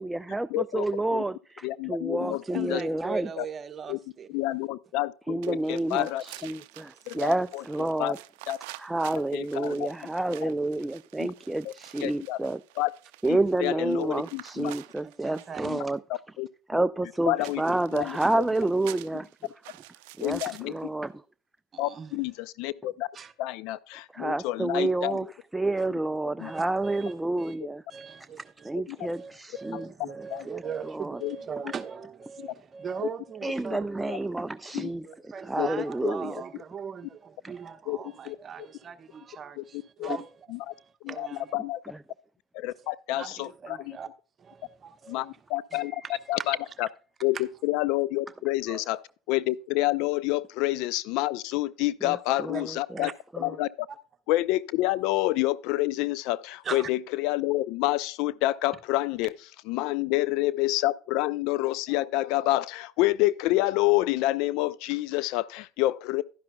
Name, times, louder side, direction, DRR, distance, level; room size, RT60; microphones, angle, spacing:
voice 1, 0.0-3.3 5.3-8.2 8.8-12.6 13.2-16.0 16.7-19.3 20.2-21.2 24.1-25.3 25.5-27.8 28.6-29.9 30.5-30.6 30.9-31.2 33.4-35.1 35.4-36.4 37.4-37.5 41.8-42.0 45.7-46.0 52.0-53.1 53.3-53.6, right 2 dB, 10° right, 0.3 m, -29 dB
voice 2, 0.5-0.8 1.1-1.2 1.6-2.8 3.4-3.5 3.9-4.0 4.3-6.2 7.1-7.6 8.0-8.1 8.5-8.6 9.3-9.9 11.2-11.3 11.6-11.7 12.0-12.4 12.8-12.9 13.3-14.7 15.7-15.8 16.4-16.5 17.3-17.6 17.9-18.4 20.2-20.7 21.8-23.1 23.4-25.3 26.4-26.5 28.9-29.0 29.7-30.5 31.2-31.4 34.7-34.9 35.6-36.3 37.9-38.0 38.3-38.4 39.6-39.7 40.0-40.2 40.5-40.7 41.0-41.3 41.5-41.8 42.5-44.0 45.1-45.9 46.3-46.9 47.2-49.0 49.3-53.1 53.4-53.7 54.3-59.3 59.7-66.2, left 17 dB, 65° left, 0.4 m, -28 dB
voice 3, 2.2-4.3 15.0-15.9 20.3-20.5 21.7-22.2 23.1-23.3 26.4-27.6 27.9-28.7 29.0-34.4 35.0-41.5 42.8-44.1 44.4-45.4 45.7-45.8 46.4-46.7 47.3-47.4 48.7-48.8 52.3-52.6 53.0-53.1 56.6-56.9, right 6 dB, 35° right, 1.0 m, -40 dB
sound 1, 5.4-15.7 17.4-20.8, right 18 dB, 75° right, 0.4 m, -48 dB
11.5 x 10.5 x 2.2 m
hypercardioid pair, 85°, 0 cm